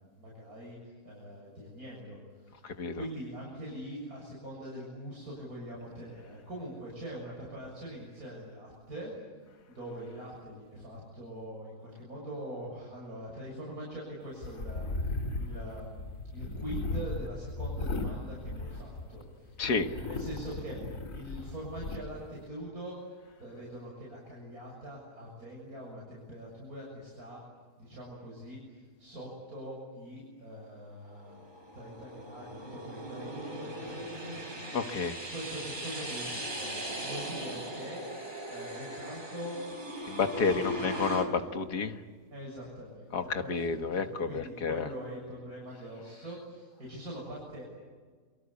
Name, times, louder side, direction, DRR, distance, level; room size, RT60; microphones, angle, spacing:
voice 1, 0.0-2.6 2.9-9.1 9.7-14.9 15.4-19.6 20.0-23.0 23.4-27.4 27.8-31.4 31.7-34.5 35.3-38.2 38.5-39.8 40.3-41.1 42.3-47.6, right 1 dB, 65° right, -4 dB, 7.4 m, -43 dB
voice 2, 2.6-3.0 19.6-19.9 34.7-35.1 40.1-42.0 43.1-44.9, left 4 dB, 80° left, 7 dB, 2.1 m, -30 dB
sound 1, 14.4-19.2 19.6-22.0, left 2 dB, 55° left, 2.9 m, -36 dB
sound 2, 31.2-41.3, equal, 30° right, 4.7 m, -39 dB
29.0 x 24.5 x 8.4 m, 1.6 s
omnidirectional pair, 1.7 m